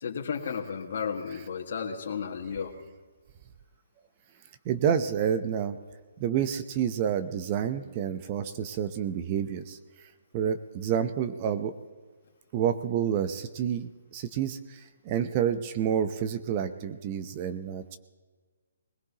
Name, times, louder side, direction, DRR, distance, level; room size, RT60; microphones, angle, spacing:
voice 1, 0.0-2.8, left 6 dB, 55° left, 1 dB, 1.8 m, -33 dB
voice 2, 4.6-5.8 6.2-9.8 10.3-11.7 12.5-18.0, right 8 dB, 30° right, 10 dB, 0.7 m, -29 dB
21.0 x 17.5 x 2.9 m, 1.4 s
hypercardioid pair, 155°, 0 cm